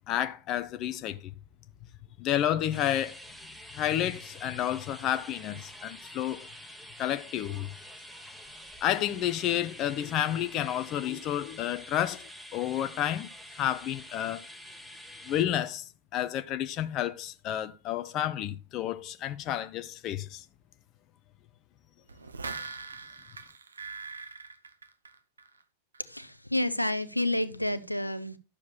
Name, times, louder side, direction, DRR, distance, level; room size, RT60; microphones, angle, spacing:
voice 1, 0.1-1.3 2.2-3.2 3.7-6.5 7.0-7.7 8.8-13.3 13.6-14.5 15.3-20.4, left 11 dB, 35° left, 0.5 m, -30 dB
sound 1, 2.7-15.4, equal, ahead, 1.0 m, -47 dB
sound 2, 22.1-25.6 25.9-26.0, right 4 dB, 75° right, 0.6 m, -42 dB
voice 2, 26.0-28.4, left 1 dB, 90° left, 0.6 m, -30 dB
11.5 x 7.1 x 2.3 m
figure-of-eight pair, 90°, 0 cm